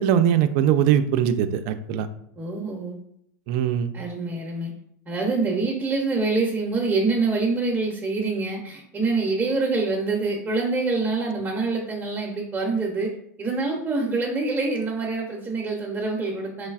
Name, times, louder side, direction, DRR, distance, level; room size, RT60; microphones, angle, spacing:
voice 1, 0.0-2.1 3.5-3.9, right 9 dB, 55° right, 10 dB, 0.4 m, -21 dB
voice 2, 2.4-3.0 3.9-4.7 5.1-13.1 13.4-16.7, right 3 dB, 20° right, -1 dB, 0.6 m, -25 dB
3.9 x 3.2 x 2.3 m, 0.70 s
supercardioid pair, 120°, 10 cm